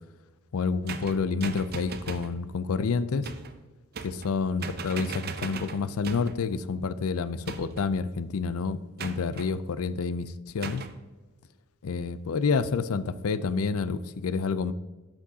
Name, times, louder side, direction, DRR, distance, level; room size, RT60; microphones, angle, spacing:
voice 1, 0.5-3.3 4.0-10.8 11.8-14.7, left 5 dB, 85° left, 15 dB, 0.5 m, -29 dB
sound 1, 0.9-2.4 3.2-3.6 3.9-4.4 4.6-6.4 7.5-7.9 9.0-9.5 10.6-11.0, right 5 dB, 45° right, 0.6 m, -38 dB
13.0 x 6.2 x 2.8 m, 1.2 s
head